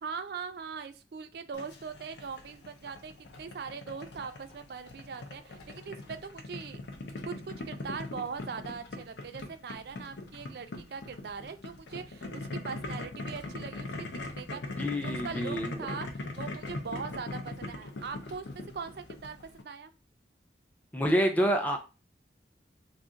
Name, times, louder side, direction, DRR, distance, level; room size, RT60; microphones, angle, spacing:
voice 1, 0.0-3.1 3.4-6.8 7.2-14.6 15.0-19.9, right 5 dB, 60° right, 10 dB, 0.4 m, -41 dB
Boiling, 1.5-19.6, left 2 dB, 80° left, 0.6 m, -41 dB
voice 2, 14.8-15.7 20.9-21.8, equal, 10° left, 4 dB, 0.5 m, -27 dB
2.4 x 2.4 x 3.8 m, 0.30 s
head